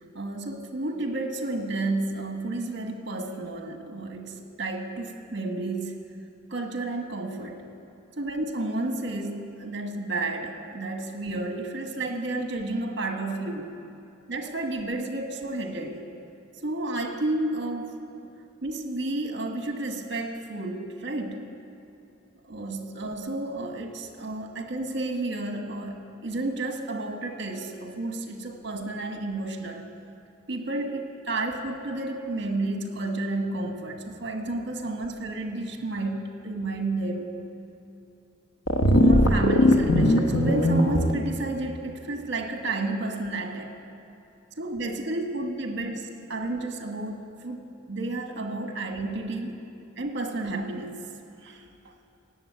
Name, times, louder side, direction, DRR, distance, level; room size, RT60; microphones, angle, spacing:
voice 1, 0.1-6.1 6.5-7.6 8.2-13.8 14.3-16.1 16.6-18.0 18.6-21.4 22.5-29.9 30.5-37.4 38.9-43.7 44.6-46.0 46.3-47.6 47.9-49.6 50.0-51.0 51.4-51.6, right 2 dB, 60° right, 4 dB, 1.4 m, -31 dB
sound 1, 38.7-41.1, left 1 dB, 90° left, 1.1 m, -19 dB
16.0 x 7.7 x 9.5 m, 2.7 s
head